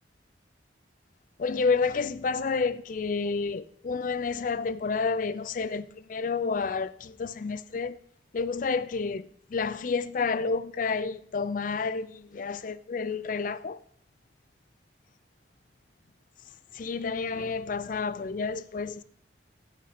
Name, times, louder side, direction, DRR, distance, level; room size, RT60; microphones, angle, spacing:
voice 1, 1.4-8.0 8.3-13.8 16.7-19.0, left 4 dB, 45° left, 0.4 m, -30 dB
13.5 x 5.8 x 4.9 m
head